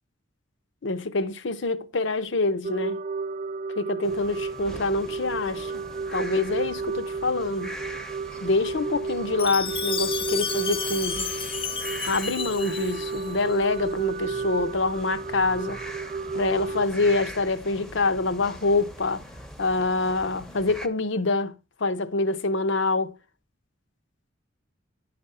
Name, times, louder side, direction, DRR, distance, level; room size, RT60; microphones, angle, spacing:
voice 1, 0.8-3.0 3.8-5.8 6.1-7.7 8.4-11.3 12.0-15.8 16.3-19.3 19.6-23.1, left 3 dB, 65° left, 0.8 m, -26 dB
sound 1, 2.6-16.9, right 4 dB, 40° right, 0.4 m, -32 dB
sound 2, 4.0-20.9, equal, ahead, 0.8 m, -43 dB
Chime, 9.4-13.5, left 6 dB, 30° left, 0.5 m, -32 dB
10.5 x 5.1 x 5.4 m
head